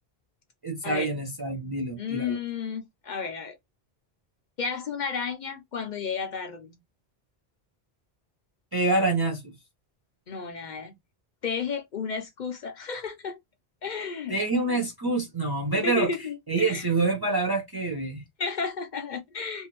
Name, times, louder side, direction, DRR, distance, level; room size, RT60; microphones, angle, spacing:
voice 1, 0.6-2.4 8.7-9.5 14.3-16.1 16.5-18.2, right 2 dB, 35° right, 0.4 m, -26 dB
voice 2, 2.0-3.6 4.6-6.8 10.3-10.9 11.4-13.4 13.8-14.4 15.7-16.9 18.4-19.7, left 5 dB, 55° left, 0.5 m, -33 dB
2.7 x 2.4 x 2.8 m
omnidirectional pair, 1.1 m